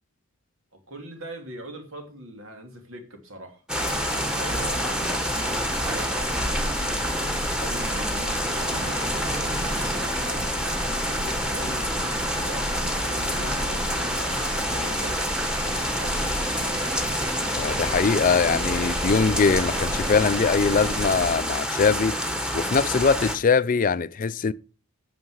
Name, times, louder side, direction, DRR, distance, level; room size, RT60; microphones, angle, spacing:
voice 1, 0.7-3.6 4.0-7.0 7.6-10.6 11.1-16.3, right 1 dB, 70° right, 2.8 m, -41 dB
sound 1, 3.7-23.4, equal, 5° right, 1.4 m, -28 dB
sound 2, 3.8-21.4, right 1 dB, 25° right, 1.2 m, -33 dB
sound 3, 3.9-13.6, right 3 dB, 40° right, 1.0 m, -43 dB
voice 2, 17.5-22.2 22.5-24.5, left 5 dB, 40° left, 0.4 m, -22 dB
9.5 x 7.5 x 6.3 m
head